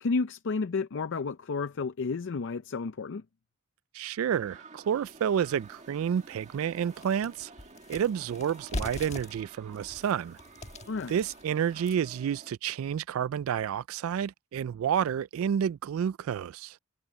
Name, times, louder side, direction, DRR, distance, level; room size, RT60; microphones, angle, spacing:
voice 1, 0.0-3.2 10.9-11.2, left 4 dB, 60° left, 0.5 m, -31 dB
voice 2, 3.9-7.5 7.9-10.4 11.1-16.8, right 8 dB, 80° right, 0.3 m, -30 dB
sound 1, 4.2-12.5, right 3 dB, 35° right, 1.9 m, -52 dB
sound 2, 5.1-5.2 5.7-5.8 6.2-12.2, left 1 dB, 35° left, 1.4 m, -42 dB
head